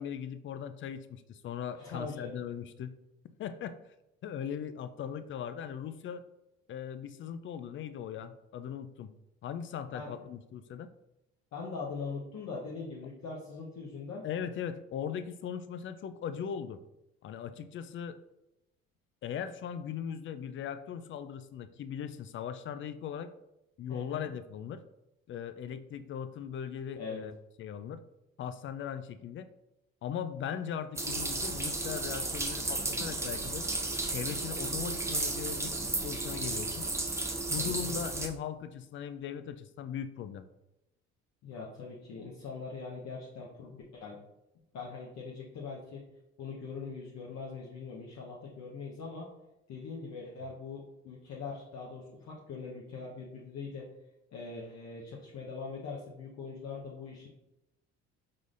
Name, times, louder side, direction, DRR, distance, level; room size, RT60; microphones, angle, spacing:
voice 1, 0.0-2.9 3.2-3.8 4.2-6.2 6.7-9.1 9.4-10.9 14.2-16.8 17.2-18.2 19.2-23.3 23.8-24.8 25.3-28.0 28.4-29.5 30.0-33.7 34.1-36.9 37.5-40.5, left 8 dB, 40° left, 12 dB, 0.4 m, -39 dB
voice 2, 1.8-2.3 9.9-10.1 11.5-14.2 23.9-24.3 27.0-27.2 37.6-37.9 41.4-44.2 44.7-46.0 46.4-49.3 49.7-53.8 54.3-57.3, left 4 dB, 55° left, -4 dB, 0.9 m, -42 dB
sound 1, 31.0-38.3, right 2 dB, 10° right, 0.6 m, -33 dB
4.7 x 3.8 x 2.5 m, 0.91 s
hypercardioid pair, 65°, 32 cm